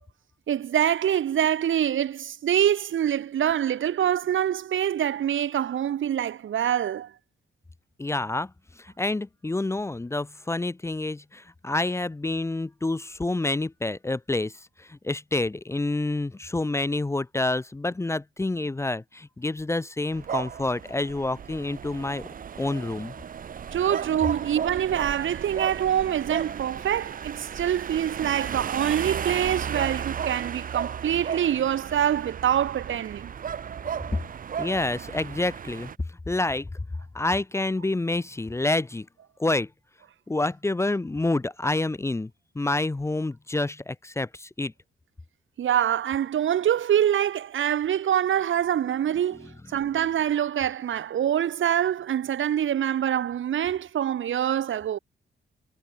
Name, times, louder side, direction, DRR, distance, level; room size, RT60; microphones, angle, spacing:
voice 1, 0.5-7.1 23.7-33.3 45.6-55.0, right 10 dB, 80° right, 2.0 m, -25 dB
voice 2, 8.0-8.5 8.8-22.3 22.6-23.1 34.6-35.9 36.3-36.7 37.1-39.1 39.4-39.7 40.3-44.7, left 2 dB, 15° left, 0.8 m, -28 dB
sound 1, 20.1-36.0, right 8 dB, 45° right, 0.9 m, -34 dB
wide cardioid pair, 165°, 20 cm